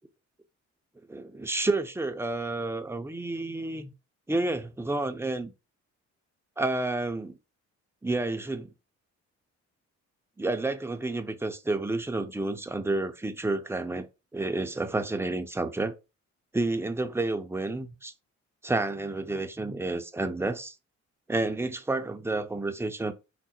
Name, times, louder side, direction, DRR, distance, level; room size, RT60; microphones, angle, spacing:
voice 1, 1.1-3.9 4.3-5.5 6.6-7.4 8.0-8.7 10.4-15.9 16.5-18.1 18.6-20.8 21.3-23.1, right 2 dB, 10° right, 0.6 m, -30 dB
4.8 x 2.0 x 4.2 m
cardioid pair, 90°, 30 cm